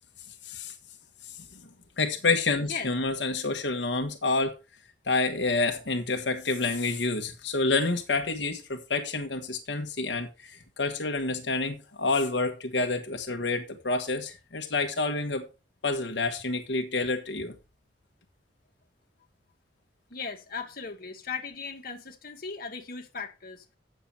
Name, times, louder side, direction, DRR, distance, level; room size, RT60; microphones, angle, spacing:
voice 1, 0.4-0.7 2.0-4.5 5.1-15.4 15.8-17.5, left 3 dB, 80° left, 1.3 m, -28 dB
voice 2, 20.1-23.8, left 5 dB, 55° left, 1.7 m, -37 dB
8.6 x 6.9 x 5.7 m
head